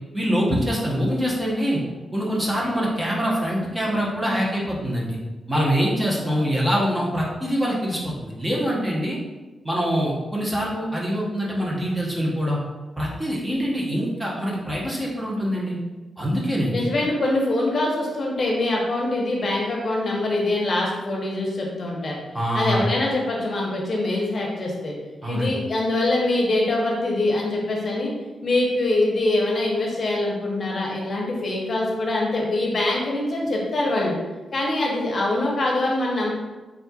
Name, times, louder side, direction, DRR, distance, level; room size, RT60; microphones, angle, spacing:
voice 1, 0.1-1.8 2.1-5.2 5.5-9.2 9.6-12.6 13.0-15.8 16.2-16.9 22.3-22.9 25.2-25.5, equal, 15° right, -5 dB, 1.0 m, -24 dB
voice 2, 16.7-22.2 22.5-24.9 25.3-28.1 28.4-34.1 34.5-36.3, left 2 dB, 50° left, -2 dB, 0.9 m, -24 dB
4.3 x 3.7 x 2.4 m, 1.2 s
cardioid pair, 105°, 0 cm